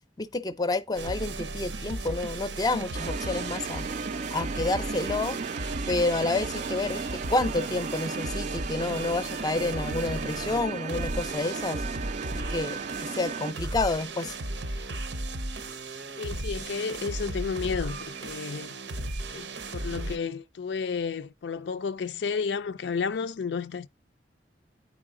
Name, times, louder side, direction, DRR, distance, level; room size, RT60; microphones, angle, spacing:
voice 1, 0.2-3.9 4.3-5.4 5.9-11.8 12.3-14.3, left 2 dB, 20° left, 0.5 m, -29 dB
sound 1, 1.0-20.2, right 2 dB, 90° right, 0.8 m, -36 dB
sound 2, 2.9-13.5, right 5 dB, 40° right, 0.3 m, -35 dB
voice 2, 16.2-18.7 19.3-23.9, left 5 dB, 75° left, 0.4 m, -32 dB
9.5 x 4.8 x 3.7 m
head